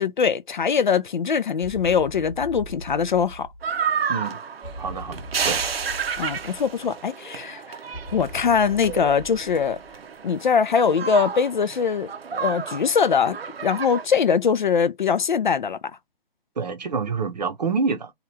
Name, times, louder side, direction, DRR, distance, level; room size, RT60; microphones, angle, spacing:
voice 1, 0.0-3.5 6.2-7.8 8.1-9.8 10.2-13.4 13.6-16.0, left 6 dB, 55° left, 0.4 m, -22 dB
sound 1, 1.6-3.9 4.6-6.9 7.9-10.2, equal, 5° right, 0.7 m, -40 dB
sound 2, 3.6-14.0, right 6 dB, 80° right, 0.7 m, -31 dB
voice 2, 4.8-5.6 16.6-18.1, right 5 dB, 45° right, 0.7 m, -27 dB
2.8 x 2.4 x 3.2 m
hypercardioid pair, 165°, 30 cm